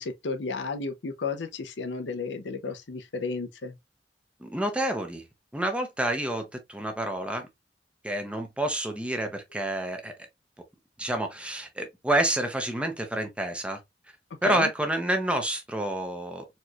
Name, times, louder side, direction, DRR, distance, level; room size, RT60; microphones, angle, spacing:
voice 1, 0.0-3.7 14.4-14.7, left 4 dB, 80° left, 0.7 m, -33 dB
voice 2, 4.4-5.2 5.5-7.5 8.0-10.1 11.0-13.8 14.4-16.5, right 1 dB, 5° right, 0.7 m, -28 dB
4.3 x 3.0 x 2.4 m
head